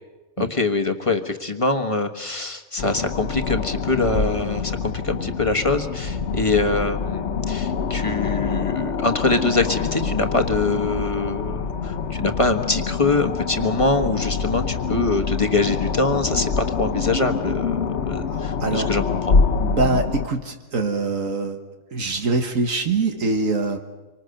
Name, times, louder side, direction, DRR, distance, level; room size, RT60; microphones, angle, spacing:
voice 1, 0.4-19.4, left 3 dB, 25° left, 5 dB, 1.4 m, -24 dB
sound 1, 2.8-20.3, left 5 dB, 55° left, 1.2 m, -25 dB
voice 2, 18.3-18.9 19.6-21.6 21.9-23.8, right 3 dB, 75° right, 5 dB, 1.8 m, -24 dB
26.0 x 25.0 x 6.6 m, 1.2 s
omnidirectional pair, 1.4 m